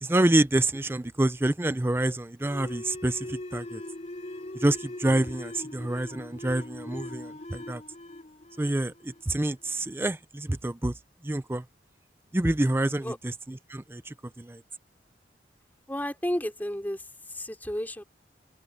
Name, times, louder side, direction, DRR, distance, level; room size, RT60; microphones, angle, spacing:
voice 1, 0.0-3.8 4.6-7.8 8.6-10.9 11.2-11.6 12.3-14.6, right 1 dB, 15° right, 0.5 m, -27 dB
sound 1, 2.5-9.7, left 1 dB, 40° left, 3.0 m, -41 dB
voice 2, 15.9-18.0, equal, 10° left, 3.0 m, -32 dB
head